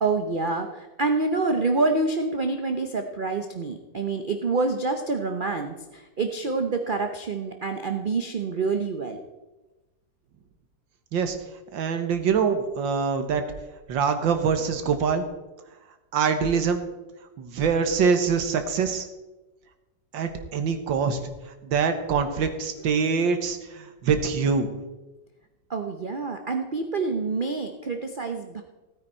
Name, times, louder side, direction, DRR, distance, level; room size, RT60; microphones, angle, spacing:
voice 1, 0.0-9.2 25.7-28.6, right 3 dB, 50° right, 5 dB, 0.6 m, -27 dB
voice 2, 11.7-13.4 13.9-15.2 16.1-16.8 17.4-19.1 20.1-21.2 21.6-24.7, right 6 dB, 85° right, 7 dB, 1.9 m, -24 dB
16.0 x 9.1 x 4.4 m, 1.1 s
omnidirectional pair, 2.0 m